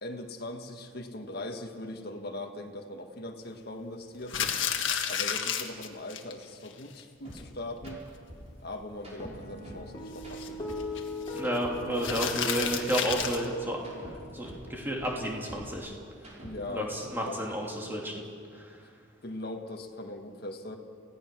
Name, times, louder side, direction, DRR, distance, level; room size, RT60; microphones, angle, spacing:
voice 1, 0.0-4.4 5.0-8.0 8.6-10.6 16.4-17.4 19.2-20.8, left 1 dB, 50° left, 3 dB, 1.7 m, -40 dB
sound 1, 4.2-6.3 6.6-6.7 7.0-7.1 7.4-7.5 7.9-8.2 10.2-11.4 12.0-13.5, left 8 dB, 75° left, 1.6 m, -31 dB
sound 2, 7.2-7.4 7.7-7.9 8.3-9.9 10.1-12.3 12.5-14.7 14.9-16.8, right 1 dB, 35° right, 5.3 m, -47 dB
Guitar, 9.2-15.8, left 2 dB, 20° left, 4.3 m, -41 dB
voice 2, 11.3-13.8 14.0-15.9 16.7-18.2 18.5-18.7, right 1 dB, 10° right, -1 dB, 3.0 m, -32 dB
29.0 x 16.5 x 6.2 m, 2.2 s
head